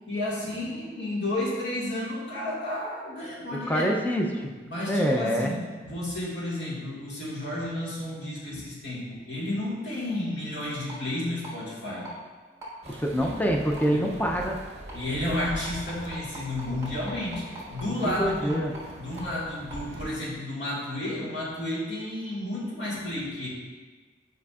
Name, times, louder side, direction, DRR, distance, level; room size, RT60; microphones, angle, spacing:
voice 1, 0.1-3.9 4.6-5.6 5.8-12.2 13.1-13.3 13.9-14.0 14.9-17.4 17.7-18.7 19.0-23.5, left 1 dB, 75° left, -6 dB, 1.8 m, -32 dB
voice 2, 3.7-4.5 4.9-5.5 12.9-14.6 18.2-18.7, equal, 10° left, 1 dB, 0.5 m, -25 dB
sound 1, 10.9-11.0 11.4-11.5 12.0-12.1 12.6-12.7 13.2-13.3 13.8-13.9 14.4-14.5 14.9-15.0 15.4-18.8 19.2-19.3 19.7-19.8, right 1 dB, 20° right, 1.6 m, -40 dB
sound 2, 12.8-20.1, right 1 dB, 35° right, 0.8 m, -42 dB
8.4 x 5.0 x 2.4 m, 1.4 s
head